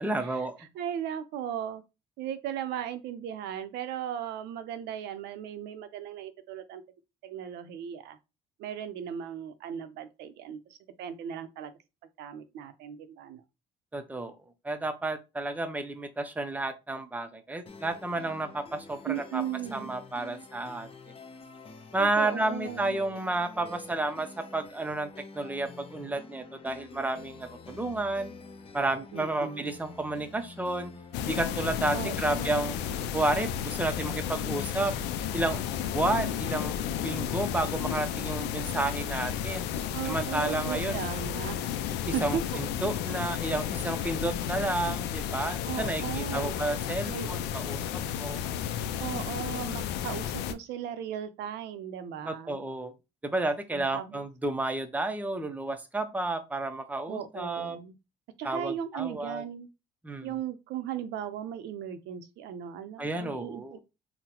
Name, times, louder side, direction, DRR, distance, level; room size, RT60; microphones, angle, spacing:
voice 1, 0.0-0.6 13.9-14.4 14.6-19.4 19.7-20.9 21.9-25.1 25.3-28.3 28.7-30.9 31.2-32.8 33.1-34.9 35.3-35.6 35.9-36.7 37.0-39.7 40.0-41.0 42.0-48.4 52.2-52.9 53.2-57.8 58.4-59.4 60.0-60.3 63.0-63.8, right 2 dB, 10° right, 0.5 m, -31 dB
voice 2, 0.7-1.8 2.2-6.8 7.2-8.2 8.6-11.7 12.2-13.4 19.0-19.9 22.0-23.0 29.1-29.7 31.9-32.7 39.9-41.7 42.1-42.4 45.7-46.7 47.0-47.3 49.0-52.7 53.7-54.2 57.1-58.0 58.4-59.7 60.2-63.8, right 9 dB, 80° right, 0.6 m, -37 dB
sound 1, 17.7-33.7, left 4 dB, 35° left, 0.7 m, -48 dB
sound 2, 31.1-50.5, left 9 dB, 85° left, 0.4 m, -33 dB
3.8 x 2.1 x 2.9 m
cardioid pair, 110°, 17 cm